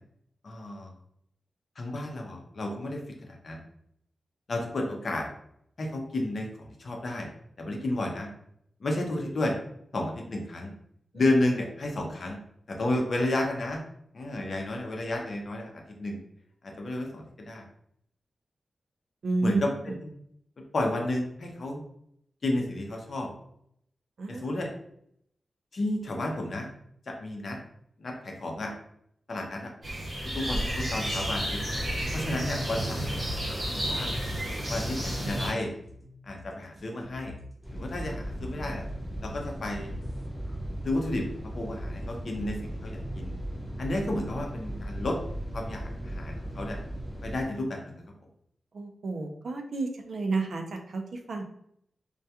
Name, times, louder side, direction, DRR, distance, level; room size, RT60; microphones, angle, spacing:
voice 1, 0.4-0.9 1.8-3.0 3.4-3.6 4.5-5.3 5.8-7.3 7.6-8.3 8.8-9.5 9.9-10.7 11.1-12.4 12.7-13.8 14.1-15.7 16.0-16.2 16.6-17.7 19.4-19.6 19.8-20.1 20.7-21.8 22.4-23.3 24.3-24.7 25.7-26.7 27.1-27.6 28.0-28.7 29.3-29.7 30.3-31.6 32.1-34.1 34.7-35.7 36.2-37.3 37.7-38.8 39.2-39.9 40.8-41.2 41.5-43.3 43.8-45.2 45.5-46.8 47.2-48.0, left 1 dB, 50° left, 1 dB, 0.5 m, -32 dB
voice 2, 19.2-20.0 24.2-24.5 32.0-32.2 48.7-51.4, right 3 dB, 65° right, 4 dB, 0.4 m, -31 dB
sound 1, 29.8-35.5, equal, 45° right, 1.1 m, -31 dB
sound 2, 33.0-40.3, left 2 dB, 30° right, 0.6 m, -46 dB
sound 3, 37.6-47.4, right 1 dB, ahead, 0.9 m, -37 dB
2.2 x 2.2 x 2.7 m, 0.69 s
wide cardioid pair, 130°, 0 cm